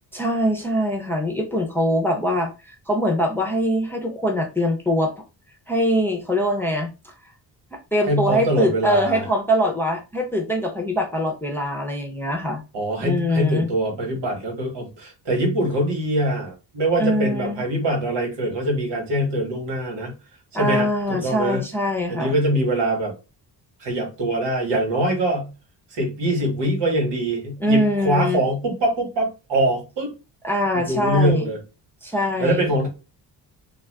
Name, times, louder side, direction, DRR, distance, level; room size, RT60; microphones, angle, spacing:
voice 1, 0.1-5.1 5.7-7.1 7.7-12.6 13.0-13.7 17.0-17.6 20.5-22.4 27.6-28.4 30.4-31.5 32.0-32.8, equal, 5° left, 2 dB, 0.5 m, -23 dB
voice 2, 8.1-9.2 12.7-20.1 20.6-21.6 22.1-23.1 23.8-25.5 25.9-30.1 30.7-31.6 32.4-32.9, right 1 dB, 90° right, 2 dB, 1.4 m, -23 dB
2.4 x 2.3 x 3.4 m, 0.29 s
cardioid pair, 120°, 41 cm